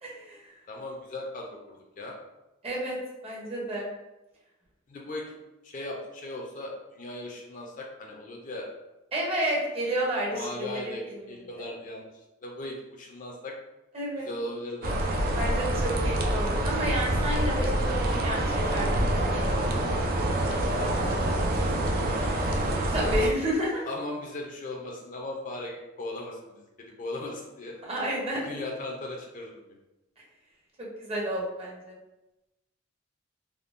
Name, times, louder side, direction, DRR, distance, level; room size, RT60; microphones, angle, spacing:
voice 1, 0.0-0.4 2.6-3.0 3.2-3.9 9.1-10.9 13.9-14.3 15.3-19.9 22.9-23.8 27.8-28.5 30.8-31.9, right 1 dB, 30° right, -4 dB, 0.8 m, -31 dB
voice 2, 0.7-2.2 4.9-5.4 5.6-8.7 10.3-12.1 12.4-13.5 14.2-15.0 20.6-22.7 23.8-27.8 28.4-29.8, left 1 dB, 45° left, 0 dB, 0.5 m, -38 dB
sound 1, 14.8-23.3, right 1 dB, 50° right, 0.4 m, -26 dB
3.6 x 2.1 x 2.5 m, 0.98 s
head